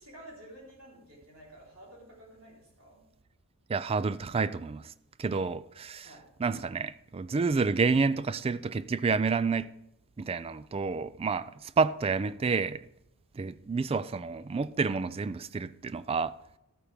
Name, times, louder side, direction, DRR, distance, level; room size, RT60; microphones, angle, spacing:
voice 1, 0.0-3.0 6.0-6.2, right 1 dB, 70° right, 3.9 m, -51 dB
voice 2, 3.7-4.9 5.2-6.1 6.4-9.7 10.2-12.8 13.3-16.3, right 4 dB, 25° right, 0.3 m, -29 dB
13.0 x 8.8 x 3.5 m
head